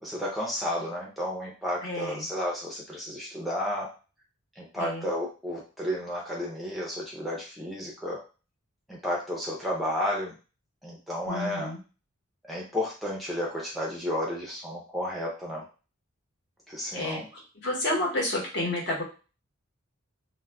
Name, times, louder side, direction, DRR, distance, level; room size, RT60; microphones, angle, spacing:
voice 1, 0.0-3.9 4.6-8.2 8.9-10.4 10.8-11.7 12.4-15.6 16.7-17.3, left 1 dB, ahead, -4 dB, 0.4 m, -32 dB
voice 2, 1.8-2.3 4.8-5.1 11.3-11.8 16.9-17.2 17.6-19.0, left 1 dB, 55° left, -3 dB, 1.0 m, -30 dB
2.3 x 2.1 x 3.3 m, 0.35 s
head